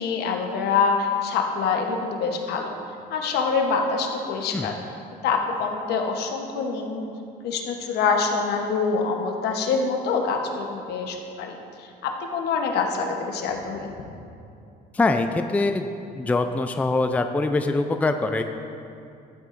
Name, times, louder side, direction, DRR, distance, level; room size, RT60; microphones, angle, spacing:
voice 1, 0.0-2.8 3.1-4.8 5.2-7.1 7.4-13.9, left 5 dB, 75° left, 3 dB, 1.0 m, -25 dB
voice 2, 14.9-15.9 16.2-18.4, left 3 dB, 10° left, 7 dB, 0.4 m, -23 dB
12.5 x 8.3 x 2.6 m, 2.6 s
cardioid pair, 110°, 17 cm